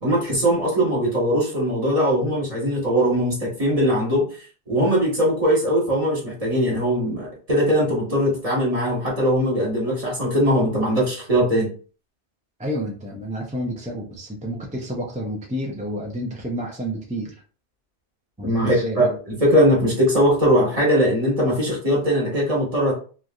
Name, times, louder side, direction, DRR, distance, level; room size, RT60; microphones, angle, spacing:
voice 1, 0.0-4.3 4.7-11.7 18.4-22.9, equal, 35° right, -4 dB, 1.3 m, -20 dB
voice 2, 12.6-17.3 18.4-19.2, equal, 10° right, -2 dB, 0.3 m, -30 dB
3.1 x 2.5 x 2.3 m, 0.39 s
omnidirectional pair, 1.1 m